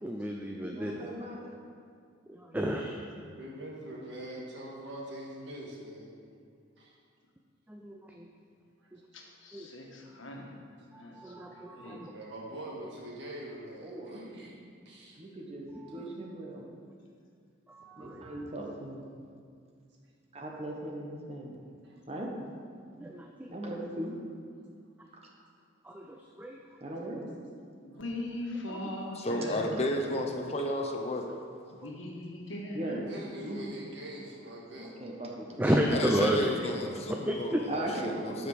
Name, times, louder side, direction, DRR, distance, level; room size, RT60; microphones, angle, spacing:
voice 1, 0.0-0.9 2.3-3.2 7.7-8.3 8.9-9.0 9.5-9.7 10.9-12.1 15.8-16.0 17.7-18.4 23.0-23.5 25.8-26.6 28.7-28.8 31.8-31.9 35.6-36.9 37.3-37.6, equal, 10° right, 1 dB, 0.4 m, -32 dB
voice 2, 0.6-1.5 13.8-14.2 15.2-15.7 15.9-16.6 18.0-19.1 20.3-21.6 22.1-22.3 23.5-24.1 26.8-27.2 32.7-33.1 33.4-33.6 34.8-35.6 36.6-36.7 37.7-38.5, right 1 dB, 30° right, -1 dB, 1.2 m, -38 dB
voice 3, 3.3-6.1 6.8-6.9 12.1-14.5 14.9-15.2 21.8-21.9 33.0-34.9, right 1 dB, 60° right, -3 dB, 1.9 m, -43 dB
voice 4, 9.4-10.4 11.0-11.1 11.7-12.0 27.2-27.4 27.8-29.7 31.8-33.0, left 1 dB, 80° left, 0 dB, 1.4 m, -39 dB
voice 5, 29.1-31.3 35.9-38.5, left 1 dB, 35° left, 3 dB, 0.7 m, -32 dB
12.5 x 5.1 x 4.9 m, 2.2 s
head